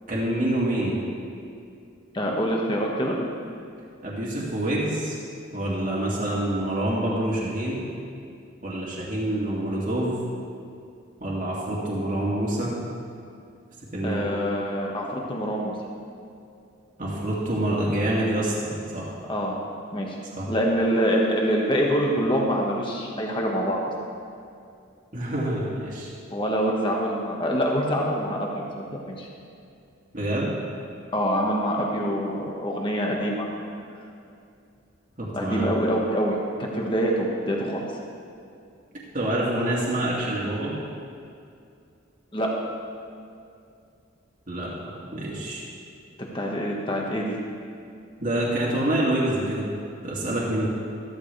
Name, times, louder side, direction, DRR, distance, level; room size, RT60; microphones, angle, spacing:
voice 1, 0.1-1.0 4.0-5.2 5.5-7.8 8.6-10.2 11.2-12.8 13.9-14.2 17.0-19.1 20.4-20.5 25.1-26.1 30.1-30.5 35.2-35.7 39.1-40.7 44.5-44.7 45.1-45.6 48.2-49.7 50.0-50.7, right 1 dB, 40° right, -6 dB, 2.1 m, -26 dB
voice 2, 2.1-3.2 14.0-15.7 19.3-19.5 19.9-20.1 20.5-23.9 26.3-29.3 31.1-33.5 35.3-36.3 36.6-37.8 42.3-42.5 46.3-47.4, equal, 25° left, -2 dB, 1.7 m, -25 dB
14.0 x 13.5 x 3.5 m, 2.4 s
head